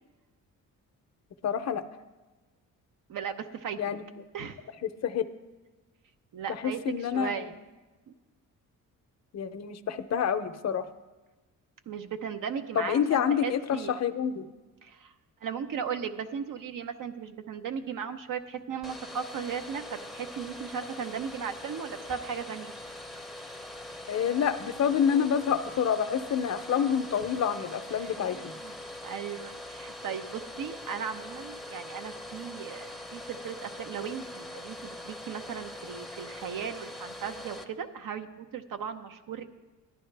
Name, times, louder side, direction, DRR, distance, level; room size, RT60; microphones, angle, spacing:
voice 1, 1.4-1.8 3.8-4.0 4.8-5.3 6.5-7.5 9.3-10.9 12.8-14.5 24.1-28.5, left 8 dB, 50° left, 10 dB, 0.6 m, -28 dB
voice 2, 3.1-3.8 4.3-4.6 6.3-7.6 11.9-13.9 14.8-15.1 15.4-22.7 28.0-28.8 29.0-39.5, right 7 dB, 65° right, 8 dB, 0.9 m, -37 dB
Domestic sounds home sounds, 18.8-37.6, left 1 dB, ahead, 0.7 m, -42 dB
15.0 x 11.0 x 3.3 m, 1.2 s
cardioid pair, 105°, 34 cm